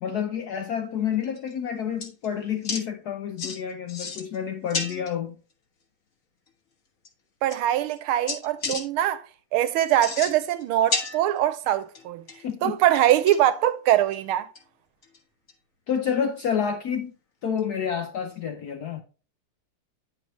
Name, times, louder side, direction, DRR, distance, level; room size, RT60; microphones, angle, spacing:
voice 1, 0.0-5.4 12.4-12.8 15.9-17.1 17.4-19.0, left 8 dB, 75° left, 0.9 m, -29 dB
sound 1, 1.2-1.5 2.0-2.3 2.6-2.8 3.4-3.6 3.9-4.4 4.7-5.1 6.5-6.6 7.1-7.2 7.5-8.0 8.3-8.8 9.9-10.6 10.9-11.6 12.0-12.4 13.0-13.5 14.1-14.2 14.6-14.7 15.0-15.2 15.5-15.6 17.6-17.7, left 4 dB, 45° left, 1.4 m, -32 dB
voice 2, 7.4-9.2 9.5-12.2 12.6-14.5, right 12 dB, 85° right, 1.5 m, -22 dB
9.3 x 5.9 x 3.0 m
omnidirectional pair, 2.3 m